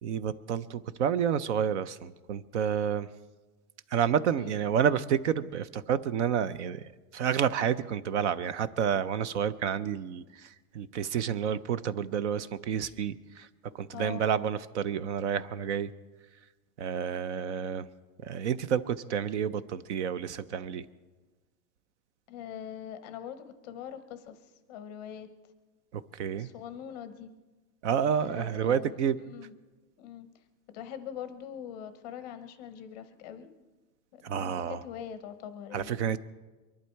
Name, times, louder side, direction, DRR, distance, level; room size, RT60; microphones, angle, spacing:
voice 1, 0.0-3.1 3.9-13.5 13.7-15.9 16.8-17.9 18.2-20.9 25.9-26.5 27.8-29.2 34.2-34.8 35.7-36.2, right 8 dB, 50° right, 15 dB, 0.5 m, -29 dB
voice 2, 13.6-14.3 22.3-24.4 24.7-25.3 26.3-27.3 28.2-29.0 29.3-29.5 30.0-30.3 30.7-33.5 34.1-35.9, left 9 dB, 25° left, 10 dB, 0.6 m, -42 dB
23.5 x 11.5 x 4.5 m, 1.2 s
supercardioid pair, 175°, 47 cm